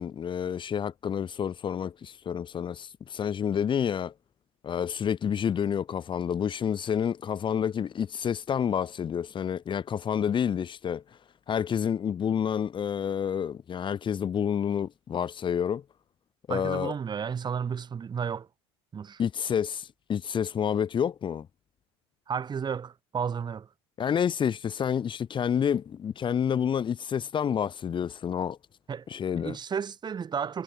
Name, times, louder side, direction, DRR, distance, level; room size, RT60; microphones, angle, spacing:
voice 1, 0.0-4.1 4.6-11.0 11.5-15.8 16.5-16.9 19.2-21.5 24.0-28.6 29.1-29.6, left 8 dB, 35° left, 2.3 m, -29 dB
voice 2, 16.5-18.5 18.9-19.2 22.3-23.7 28.9-29.1 29.4-30.6, right 7 dB, 30° right, 3.3 m, -32 dB
hypercardioid pair, 85°, 14 cm